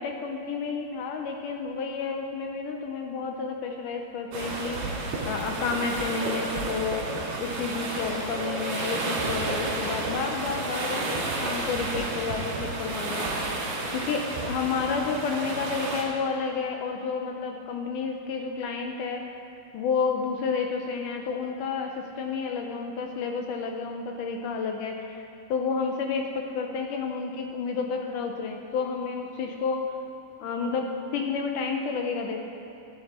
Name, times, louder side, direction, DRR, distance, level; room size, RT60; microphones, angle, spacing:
voice 1, 0.0-7.1 7.4-13.3 13.9-19.2 19.7-29.9 30.4-32.5, left 5 dB, 75° left, 3 dB, 1.9 m, -30 dB
sound 1, 4.3-16.0, right 2 dB, 85° right, 3.7 m, -31 dB
14.0 x 8.8 x 4.3 m, 2.9 s
omnidirectional pair, 4.3 m